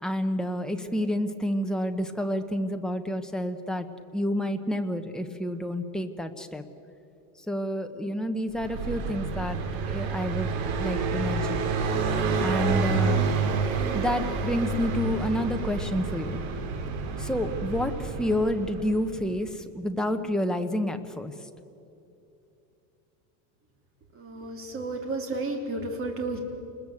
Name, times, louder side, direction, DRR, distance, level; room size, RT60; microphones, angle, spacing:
voice 1, 0.0-3.9 4.1-6.6 7.5-9.6 9.9-10.5 10.8-11.7 12.4-13.2 13.9-16.4 17.2-21.3, equal, ahead, 5 dB, 0.9 m, -29 dB
Car passing by, 8.5-19.2, right 4 dB, 60° right, 3.5 m, -29 dB
voice 2, 24.1-26.4, right 2 dB, 30° right, 3 dB, 3.4 m, -32 dB
29.0 x 21.0 x 8.4 m, 2.8 s
cardioid pair, 160°, 42 cm